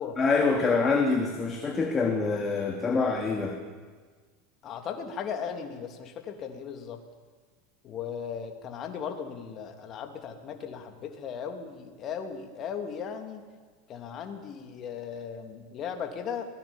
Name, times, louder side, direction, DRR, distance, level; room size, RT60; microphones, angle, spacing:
voice 1, 0.2-3.6, left 4 dB, 25° left, 2 dB, 3.0 m, -25 dB
voice 2, 4.6-7.0 7.8-13.4 13.9-16.4, left 7 dB, 40° left, 5 dB, 3.3 m, -37 dB
24.0 x 19.0 x 7.4 m, 1.5 s
hypercardioid pair, 85°, 0 cm